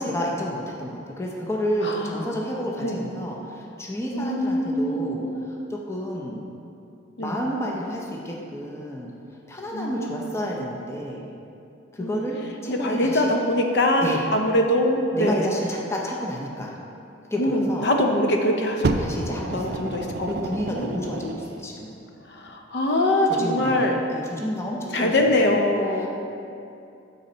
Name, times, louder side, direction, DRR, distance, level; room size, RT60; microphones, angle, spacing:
voice 1, 0.0-6.4 7.2-9.1 9.5-11.3 11.9-13.2 14.0-14.2 15.1-16.7 17.3-17.9 19.0-19.9 20.3-22.0 23.3-25.1 25.5-25.6 26.0-26.1, equal, 15° left, -2 dB, 0.5 m, -30 dB
voice 2, 1.8-2.2 2.8-3.1 4.1-5.5 7.2-7.4 9.7-10.4 12.0-12.3 12.7-15.5 17.4-18.9 19.5-21.4 22.3-24.0 24.9-26.1, left 1 dB, 55° left, 2 dB, 0.6 m, -23 dB
Fire, 18.8-21.7 22.5-22.6, right 3 dB, 55° right, 0.3 m, -29 dB
6.6 x 4.2 x 5.4 m, 2.6 s
head